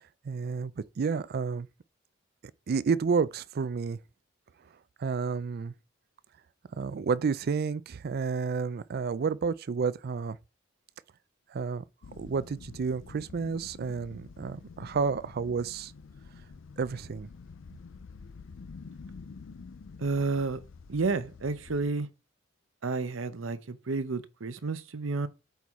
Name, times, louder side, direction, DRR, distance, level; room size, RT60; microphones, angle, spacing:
voice 1, 0.2-1.7 2.7-4.0 5.0-5.7 6.7-10.4 11.5-11.8 12.2-15.9 16.8-17.3, right 5 dB, 50° right, 0.4 m, -30 dB
sound 1, 12.0-21.9, left 4 dB, 75° left, 0.5 m, -48 dB
voice 2, 20.0-20.6 20.9-22.1 22.8-25.3, right 3 dB, 85° right, 0.7 m, -31 dB
8.1 x 4.6 x 3.6 m
head